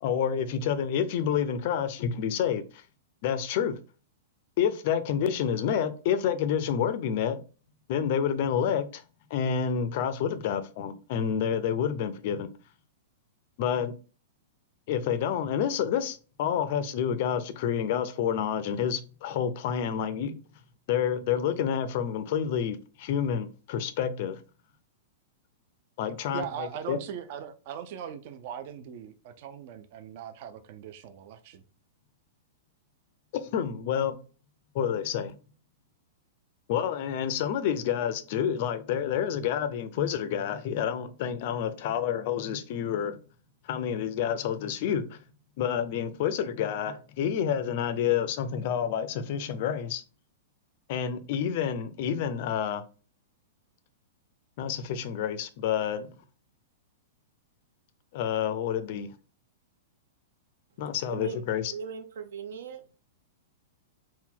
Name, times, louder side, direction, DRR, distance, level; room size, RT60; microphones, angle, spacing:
voice 1, 0.0-2.8 3.2-3.8 4.6-7.4 7.9-9.0 9.3-12.5 13.6-13.9 14.9-20.3 20.9-24.4 26.0-27.0 33.3-34.2 34.7-35.4 36.7-43.2 43.6-45.2 45.6-50.0 50.9-52.8 54.6-56.1 58.1-59.1 60.8-61.7, left 8 dB, 35° left, 0.4 m, -29 dB
voice 2, 26.3-31.6, right 8 dB, 35° right, 0.3 m, -40 dB
voice 3, 61.0-61.4 61.7-62.8, right 6 dB, 75° right, 0.7 m, -38 dB
3.7 x 2.2 x 4.4 m
supercardioid pair, 180°, 0 cm